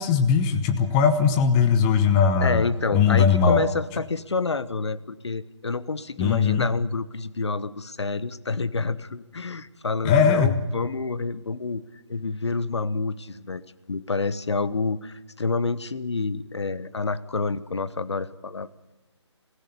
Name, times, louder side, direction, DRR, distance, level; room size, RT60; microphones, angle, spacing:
voice 1, 0.0-2.7 2.9-3.6 6.2-6.7 10.0-10.5, left 6 dB, 10° left, 9 dB, 0.8 m, -19 dB
voice 2, 2.4-11.8 12.1-13.6 13.9-18.7, left 4 dB, 65° left, 16 dB, 1.1 m, -28 dB
24.5 x 16.0 x 7.0 m, 1.0 s
figure-of-eight pair, 155°, 15 cm